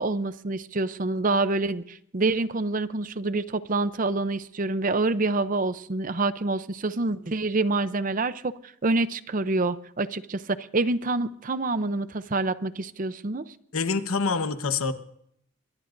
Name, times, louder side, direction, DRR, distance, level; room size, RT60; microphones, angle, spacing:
voice 1, 0.0-13.5, right 2 dB, 40° right, 0.6 m, -27 dB
voice 2, 13.7-14.9, left 4 dB, 75° left, 1.1 m, -26 dB
24.5 x 21.5 x 2.6 m
head